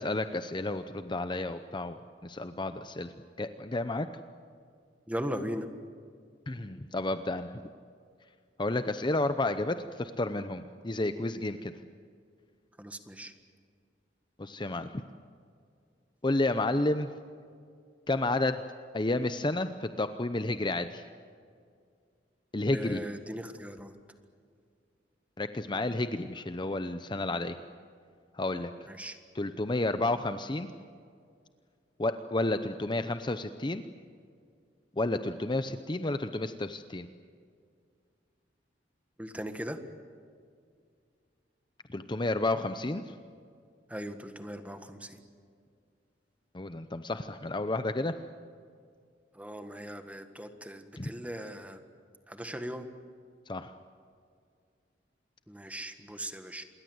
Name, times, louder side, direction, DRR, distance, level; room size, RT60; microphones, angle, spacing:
voice 1, 0.0-2.0 2.2-3.1 3.4-4.1 6.5-7.6 8.6-11.7 14.4-15.0 16.2-17.1 18.1-18.6 18.9-21.0 22.5-23.0 25.4-27.6 28.3-28.9 29.3-30.7 32.0-33.8 35.0-37.1 41.9-43.1 46.5-48.1 51.0-51.1 53.5-53.7, left 2 dB, 25° left, 10 dB, 0.7 m, -31 dB
voice 2, 5.1-5.7 12.8-13.3 22.7-23.9 28.9-29.2 39.2-39.8 43.9-45.2 49.3-51.8 52.3-52.9 55.5-56.6, equal, 10° right, 8 dB, 1.6 m, -39 dB
27.5 x 21.5 x 8.0 m, 2.2 s
head